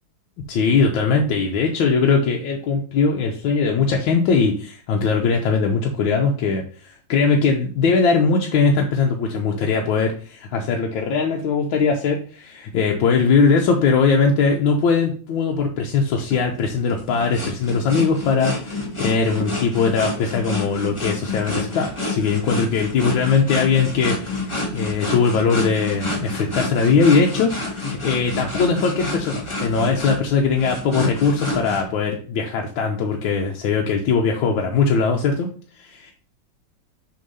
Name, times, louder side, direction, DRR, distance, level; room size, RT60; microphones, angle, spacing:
voice 1, 0.5-35.5 35.8-36.1, left 5 dB, 85° left, 2 dB, 1.5 m, -20 dB
sound 1, 16.2-31.8, left 2 dB, 20° left, 1.1 m, -28 dB
6.6 x 3.5 x 5.4 m, 0.43 s
omnidirectional pair, 2.1 m